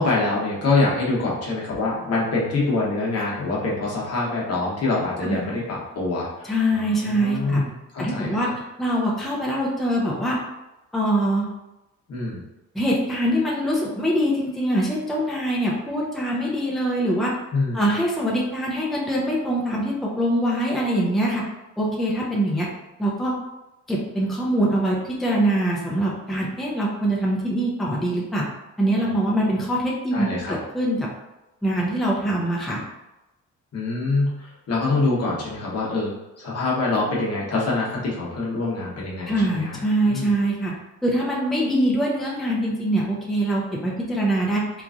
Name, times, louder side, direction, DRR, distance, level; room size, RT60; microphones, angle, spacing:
voice 1, 0.0-8.5 12.1-12.4 17.5-17.9 30.1-30.5 33.7-40.3, left 3 dB, 55° left, -4 dB, 1.0 m, -25 dB
voice 2, 6.4-7.6 8.0-8.5 8.8-10.4 10.9-11.5 12.7-17.3 17.7-21.4 21.8-22.7 23.0-23.3 23.9-28.5 28.8-31.1 31.6-32.8 39.3-40.7 41.0-44.7, right 1 dB, ahead, -4 dB, 0.6 m, -23 dB
3.0 x 2.5 x 2.3 m, 0.98 s
cardioid pair, 90°, 30 cm